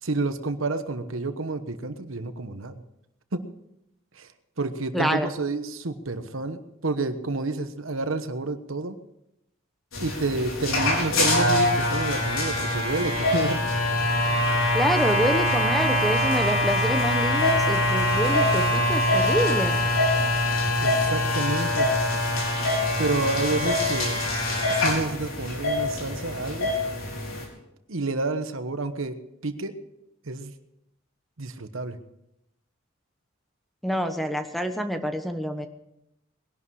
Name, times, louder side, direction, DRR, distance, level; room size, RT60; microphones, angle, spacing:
voice 1, 0.0-2.8 3.3-3.4 4.1-4.3 4.6-9.0 10.0-13.6 20.8-21.9 23.0-24.2 24.7-26.7 27.9-29.2 29.4-29.7 30.2-30.5 31.4-32.0, right 3 dB, 75° right, 10 dB, 1.1 m, -29 dB
voice 2, 4.9-5.3 14.7-19.8 33.8-35.7, equal, ahead, 7 dB, 1.0 m, -27 dB
sound 1, 9.9-27.5, left 1 dB, 85° left, 4.4 m, -24 dB
20.5 x 11.5 x 4.8 m, 0.84 s
head